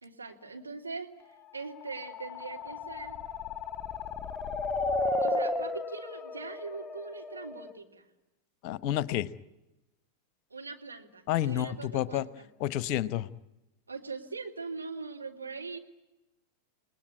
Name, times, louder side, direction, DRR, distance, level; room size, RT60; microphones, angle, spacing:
voice 1, 0.0-1.1 1.5-3.2 5.2-8.1 10.5-12.5 13.9-15.8, right 4 dB, 80° right, 2 dB, 3.0 m, -41 dB
sound 1, 1.9-7.7, left 2 dB, 20° left, 1.3 m, -33 dB
voice 2, 8.6-9.3 11.3-12.2 12.6-13.3, left 12 dB, 45° left, 18 dB, 1.0 m, -29 dB
30.0 x 19.5 x 9.6 m, 1.0 s
figure-of-eight pair, 90°, 0 cm